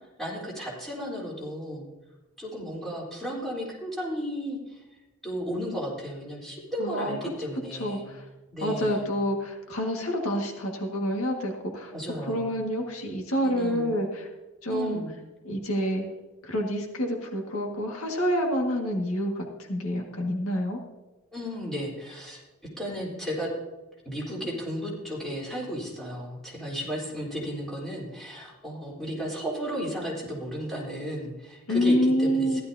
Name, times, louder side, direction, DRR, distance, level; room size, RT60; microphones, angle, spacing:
voice 1, 0.2-1.9 2.4-4.8 5.2-8.1 8.5-9.1 11.9-12.5 13.4-13.9 14.7-15.1 21.3-22.4 22.8-23.5 24.1-32.6, equal, ahead, -5 dB, 3.8 m, -34 dB
voice 2, 6.8-7.2 7.8-8.2 8.6-11.9 12.2-14.3 14.6-15.0 15.4-16.0 16.4-20.8 31.7-32.6, equal, 75° left, 1 dB, 1.8 m, -27 dB
15.5 x 12.0 x 2.8 m, 1.1 s
head